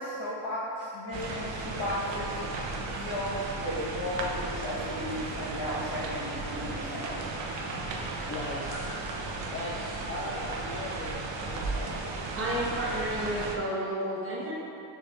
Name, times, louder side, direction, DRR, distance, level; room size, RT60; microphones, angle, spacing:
voice 1, 0.0-2.4 2.9-7.2 8.7-8.8, equal, 55° left, -7 dB, 1.0 m, -35 dB
sound 1, 1.1-13.6, right 3 dB, 70° right, 0.6 m, -35 dB
voice 2, 8.3-11.2 11.4-12.0, left 1 dB, 30° left, -6 dB, 0.5 m, -39 dB
voice 3, 12.3-14.5, right 1 dB, 30° right, -6 dB, 0.8 m, -31 dB
6.0 x 2.4 x 3.1 m, 2.7 s
cardioid pair, 90°, 45 cm